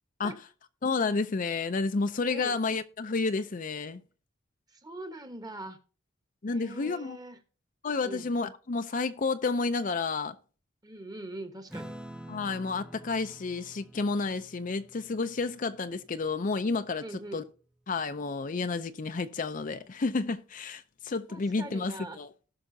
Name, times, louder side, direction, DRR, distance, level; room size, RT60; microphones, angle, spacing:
voice 1, 0.8-4.0 6.4-7.2 7.8-10.4 12.3-17.4 17.9-22.3, left 4 dB, 40° left, 0.5 m, -31 dB
voice 2, 2.3-2.6 4.7-5.8 6.5-7.4 8.0-8.3 10.8-11.9 17.0-17.4 21.3-22.2, right 2 dB, 20° right, 1.2 m, -42 dB
Acoustic guitar / Strum, 11.7-16.5, right 1 dB, 5° right, 0.6 m, -47 dB
18.0 x 6.1 x 2.7 m
head